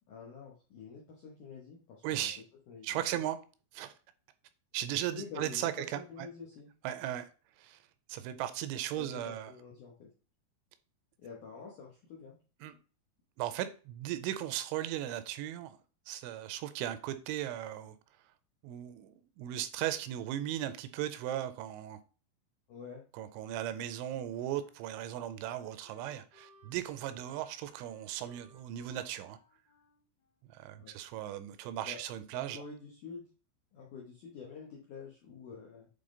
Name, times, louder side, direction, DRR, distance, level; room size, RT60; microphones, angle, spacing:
voice 1, 0.1-2.3 2.7-3.2 5.1-6.7 8.9-10.1 11.2-12.4 22.7-23.0 30.7-30.9 31.8-32.0 32.3-33.3 33.7-35.9, left 5 dB, 75° left, 1.8 m, -47 dB
voice 2, 2.0-2.4 2.8-3.4 3.7-3.9 4.7-6.3 6.8-7.3 7.6-7.8 8.1-9.5 12.6-12.8 13.4-15.8 16.1-18.0 18.6-22.0 23.1-29.4 30.5-32.6, right 12 dB, 85° right, 2.9 m, -37 dB
Wind instrument woodwind instrument, 24.4-31.2, left 4 dB, 60° left, 4.1 m, -65 dB
8.6 x 3.5 x 3.8 m
omnidirectional pair, 5.5 m